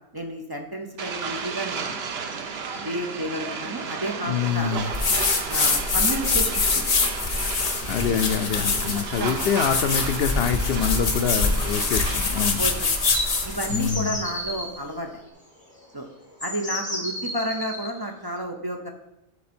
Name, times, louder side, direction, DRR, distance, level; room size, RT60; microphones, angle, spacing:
voice 1, 0.1-2.1 2.8-4.8 5.5-6.8 8.1-8.2 8.5-8.7 9.1-9.4 12.6-12.7 13.4-15.1 15.9-16.1 16.4-18.9, right 1 dB, 25° right, 2 dB, 0.6 m, -31 dB
sound 1, 1.0-14.0, right 5 dB, 75° right, 1.0 m, -34 dB
voice 2, 4.2-4.9 7.9-12.6 13.7-14.2, left 7 dB, 70° left, 9 dB, 0.8 m, -25 dB
sound 2, 4.9-14.0, left 4 dB, 40° left, 0.8 m, -24 dB
sound 3, 13.0-14.7 15.7-15.8 16.4-17.9, left 1 dB, 5° left, 2.2 m, -32 dB
12.0 x 4.2 x 4.3 m, 0.88 s
omnidirectional pair, 1.1 m